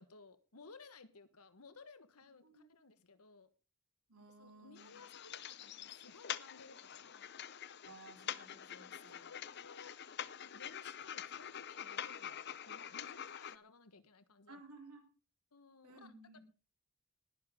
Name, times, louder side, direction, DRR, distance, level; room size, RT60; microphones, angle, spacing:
voice 1, 0.0-3.5 4.4-7.4 8.7-10.0 10.4-14.6 15.5-16.4, left 4 dB, 90° left, 12 dB, 1.4 m, -59 dB
voice 2, 4.1-5.1 7.9-9.2 14.5-15.1 15.8-16.4, right 2 dB, 80° right, 4 dB, 3.7 m, -57 dB
sound 1, 4.8-13.6, left 9 dB, 50° left, 0.6 m, -46 dB
19.5 x 10.0 x 3.7 m, 0.34 s
head